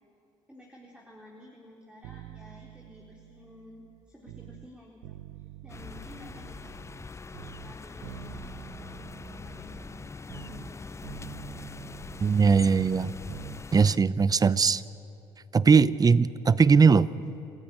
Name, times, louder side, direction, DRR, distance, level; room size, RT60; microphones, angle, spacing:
voice 1, 0.5-6.7 7.2-9.8 10.3-11.4, left 1 dB, 10° right, -2 dB, 4.0 m, -52 dB
sound 1, 2.0-4.7 5.0-7.1 7.3-10.8 11.0-13.6 13.9-14.0, right 14 dB, 80° right, 0.6 m, -47 dB
sound 2, 5.7-14.0, left 4 dB, 20° left, 0.6 m, -43 dB
voice 2, 12.2-13.1 13.7-14.8 15.5-17.1, right 5 dB, 30° right, 18 dB, 0.8 m, -20 dB
27.0 x 14.0 x 9.9 m, 2.7 s
hypercardioid pair, 65°, 14 cm